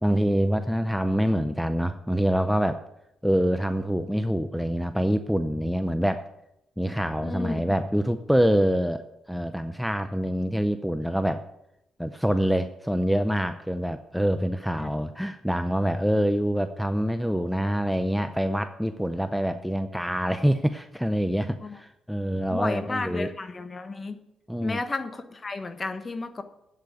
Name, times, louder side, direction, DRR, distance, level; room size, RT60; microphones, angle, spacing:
voice 1, 0.0-2.8 3.2-6.3 6.8-11.4 12.0-23.3 24.5-24.8, equal, ahead, 9 dB, 0.6 m, -25 dB
voice 2, 7.2-7.7 14.8-14.9 21.6-21.8 22.5-24.2 24.6-26.4, left 3 dB, 30° left, 9 dB, 1.3 m, -32 dB
8.4 x 8.2 x 8.2 m, 0.84 s
cardioid pair, 90°, 0 cm